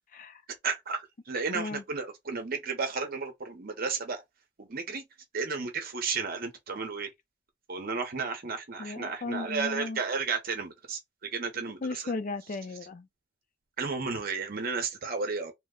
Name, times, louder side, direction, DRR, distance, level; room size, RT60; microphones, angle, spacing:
voice 1, 0.6-1.0 1.3-4.2 4.6-5.0 5.3-7.1 7.7-11.8 13.8-15.5, right 4 dB, 50° right, 0.7 m, -33 dB
voice 2, 8.8-10.0 11.8-13.1, left 3 dB, 45° left, 0.4 m, -35 dB
2.8 x 2.1 x 3.6 m
head